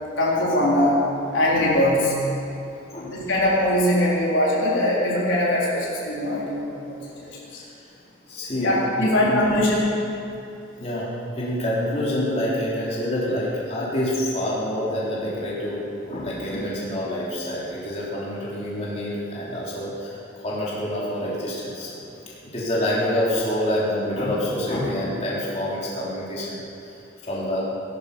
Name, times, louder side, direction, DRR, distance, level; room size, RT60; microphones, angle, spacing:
voice 1, 0.2-1.0 1.3-2.2 3.1-7.6 8.6-9.9, left 1 dB, 85° left, -6 dB, 4.2 m, -21 dB
voice 2, 2.7-3.2 6.3-6.4 7.6-7.7 8.3-9.4 10.8-11.1 11.3-27.6, left 1 dB, 35° left, -7 dB, 3.5 m, -27 dB
19.0 x 12.0 x 5.5 m, 2.7 s
head